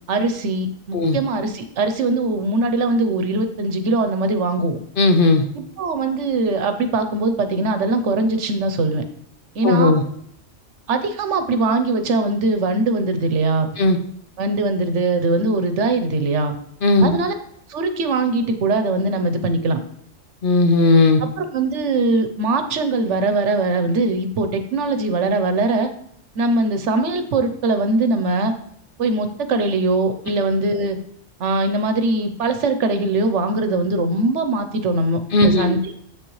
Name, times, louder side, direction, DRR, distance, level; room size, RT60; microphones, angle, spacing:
voice 1, 0.1-4.8 5.5-9.0 9.5-9.9 10.9-13.7 14.4-16.5 17.0-17.3 17.7-19.8 21.2-25.9 26.4-28.5 29.0-31.0 31.4-35.9, right 2 dB, 80° right, 8 dB, 1.1 m, -21 dB
voice 2, 5.0-5.4 9.6-10.0 13.8-14.0 16.8-17.1 20.4-21.2 35.3-35.7, left 2 dB, 50° left, 6 dB, 0.8 m, -15 dB
7.6 x 6.5 x 3.1 m, 0.68 s
omnidirectional pair, 1.2 m